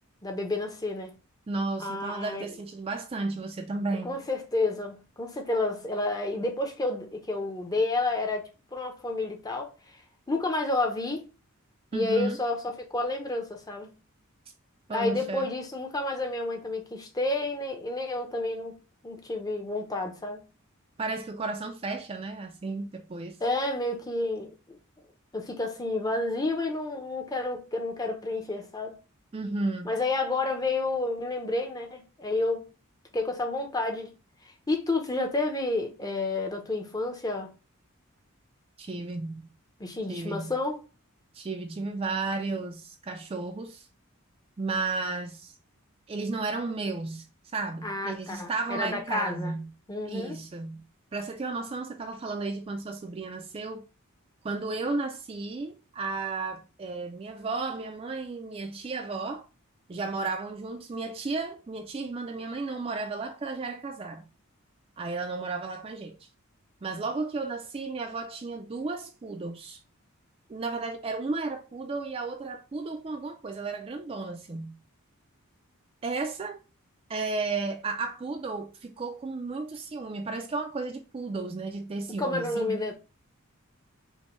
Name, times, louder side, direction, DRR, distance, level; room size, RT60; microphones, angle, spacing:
voice 1, 0.2-1.1 1.8-2.5 4.0-9.7 10.3-11.2 11.9-13.9 14.9-18.8 19.0-20.4 23.4-24.8 25.3-29.0 29.8-32.7 33.1-34.2 34.7-37.5 39.8-40.8 47.8-49.6 49.9-50.4 82.2-82.9, left 2 dB, 15° left, 0.6 m, -30 dB
voice 2, 1.5-4.2 11.9-12.4 14.9-15.5 21.0-23.4 29.3-29.9 38.8-39.4 40.1-40.5 41.3-43.9 44.6-45.6 46.1-47.2 47.5-49.7 50.1-50.8 51.1-53.8 54.4-59.5 59.9-64.3 65.0-66.3 66.8-69.8 70.5-74.8 76.0-76.6 77.1-82.8, right 3 dB, 25° right, 0.3 m, -33 dB
5.2 x 2.1 x 3.0 m
head